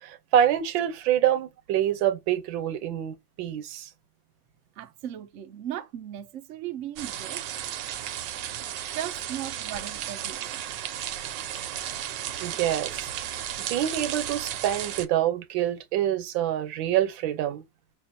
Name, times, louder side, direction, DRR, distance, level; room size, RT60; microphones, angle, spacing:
voice 1, 0.0-3.9 12.4-13.4 13.7-17.6, right 11 dB, 90° right, 1.5 m, -26 dB
voice 2, 4.8-7.6 8.2-8.3 8.9-10.6, right 11 dB, 55° right, 0.8 m, -37 dB
sound 1, 7.0-15.1, right 11 dB, 75° right, 1.3 m, -34 dB
5.8 x 2.5 x 2.6 m
omnidirectional pair, 2.0 m